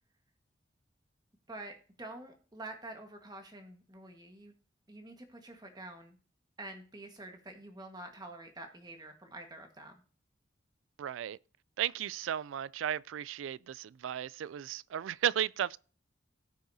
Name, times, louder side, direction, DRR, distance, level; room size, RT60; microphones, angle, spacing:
voice 1, 1.5-4.5 4.9-6.2 6.6-10.0, right 2 dB, 20° right, 1.5 m, -47 dB
voice 2, 11.0-11.4 11.8-15.8, right 10 dB, 80° right, 0.3 m, -34 dB
17.5 x 6.5 x 2.7 m
head